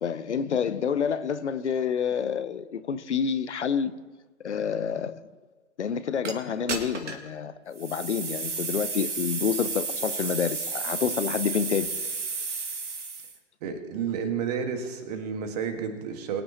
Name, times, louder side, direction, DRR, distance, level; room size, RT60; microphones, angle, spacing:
voice 1, 0.0-3.9 4.4-5.2 5.8-11.9, left 7 dB, 65° left, 0.7 m, -28 dB
sound 1, 6.2-6.3 6.7-7.3 7.8-13.4, right 4 dB, 65° right, 1.9 m, -32 dB
voice 2, 13.6-16.4, right 7 dB, 30° right, 1.6 m, -31 dB
22.5 x 9.7 x 2.9 m
figure-of-eight pair, 130°, 38 cm